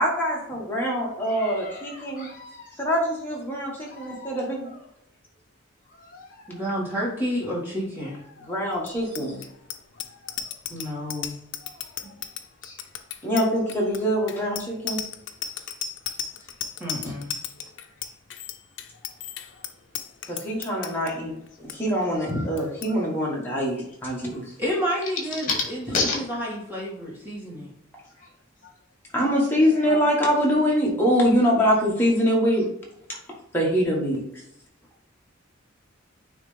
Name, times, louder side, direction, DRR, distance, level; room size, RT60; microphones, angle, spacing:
voice 1, 0.0-2.3 2.8-4.7 8.5-9.4 13.2-15.0 17.0-17.1 20.3-24.4 29.1-32.7 33.5-34.4, equal, 10° left, -4 dB, 1.6 m, -24 dB
voice 2, 1.3-2.8 3.8-4.8 5.9-6.7 8.3-8.5 9.9-10.5 11.6-12.1 12.6-12.8 19.0-19.1 19.5-19.6 21.1-21.2 22.2-23.1 24.1-24.4 25.4-25.6 25.9-26.2 28.2-28.3 29.3-29.4 29.8-30.5, left 3 dB, 40° left, -1 dB, 2.1 m, -34 dB
voice 3, 6.5-8.2 10.7-11.4 12.0-12.1 16.8-17.3 24.6-25.8 26.1-27.7, equal, 10° right, -6 dB, 2.2 m, -30 dB
Bicycle bell, 8.8-21.1 21.5-21.8 22.0-22.3 22.6-22.9, left 8 dB, 65° left, 0.5 m, -35 dB
9.3 x 3.3 x 3.4 m, 0.79 s
head